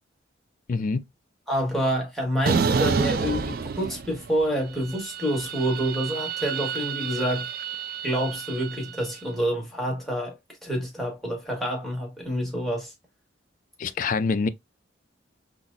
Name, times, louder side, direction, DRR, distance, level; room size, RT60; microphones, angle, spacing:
voice 1, 0.7-1.1 13.8-14.5, left 4 dB, 40° left, 0.3 m, -25 dB
voice 2, 1.5-7.5 8.0-10.4 10.6-12.9, equal, ahead, 1.2 m, -27 dB
sound 1, 2.5-4.4 4.7-9.0, right 5 dB, 50° right, 0.3 m, -29 dB
5.6 x 2.0 x 2.5 m
head